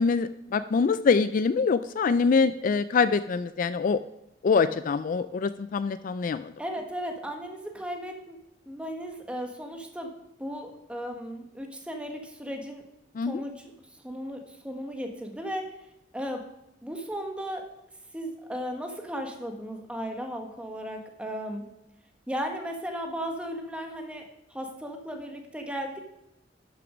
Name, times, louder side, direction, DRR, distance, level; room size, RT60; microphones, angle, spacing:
voice 1, 0.0-4.0 4.4-6.5 13.2-13.4, left 5 dB, 45° left, 13 dB, 0.3 m, -24 dB
voice 2, 6.6-8.4 8.7-10.1 10.4-12.8 13.2-13.6 14.0-15.7 16.1-16.4 16.8-17.7 18.1-21.7 22.3-26.0, equal, 5° right, 3 dB, 1.4 m, -35 dB
12.0 x 6.8 x 5.1 m, 0.88 s
head